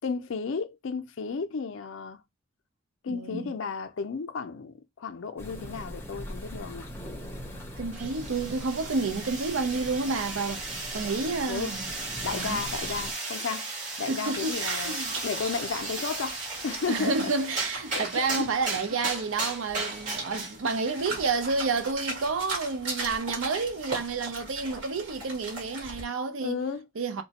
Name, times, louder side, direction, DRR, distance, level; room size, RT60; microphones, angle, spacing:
voice 1, 0.0-2.2 3.0-6.9 11.0-11.2 11.4-13.7 14.0-15.0 15.2-17.3 17.9-18.8 19.0-19.1 26.4-26.9, left 5 dB, 70° left, 0.4 m, -34 dB
voice 2, 3.1-3.5 7.8-11.9 12.3-12.6 14.1-15.1 16.9-26.6 27.0-27.2, right 4 dB, 85° right, 0.6 m, -30 dB
sound 1, 5.4-13.1, equal, 10° left, 0.7 m, -41 dB
sound 2, 7.9-21.0, right 3 dB, 40° right, 1.5 m, -35 dB
sound 3, 14.2-26.0, right 2 dB, 65° right, 1.6 m, -39 dB
4.0 x 2.2 x 2.8 m
head